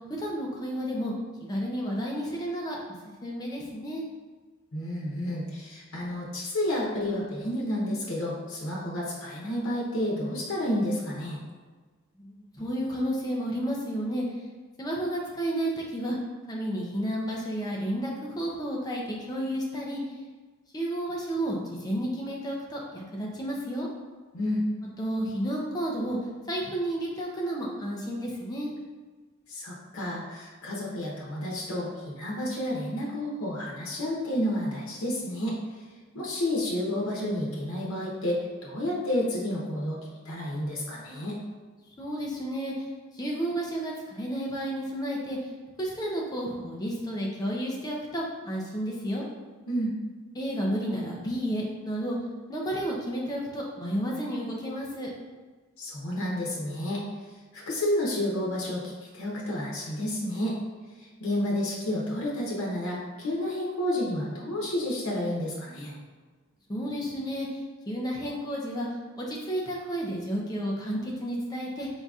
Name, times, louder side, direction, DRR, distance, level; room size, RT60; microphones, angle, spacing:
voice 1, 0.1-1.1 1.4-4.0 12.1-14.4 14.8-16.2 16.5-20.0 20.7-23.9 25.0-26.2 26.5-28.7 42.0-42.9 43.1-45.5 45.8-49.2 50.4-52.2 52.5-55.1 66.7-68.9 69.2-71.9, equal, 20° left, -2 dB, 0.6 m, -31 dB
voice 2, 4.7-11.4 24.3-24.6 29.5-35.6 36.1-41.4 49.7-49.9 55.8-57.0 57.5-60.6 61.0-66.0, left 1 dB, 90° left, -4 dB, 0.9 m, -30 dB
4.0 x 3.9 x 2.4 m, 1.4 s
head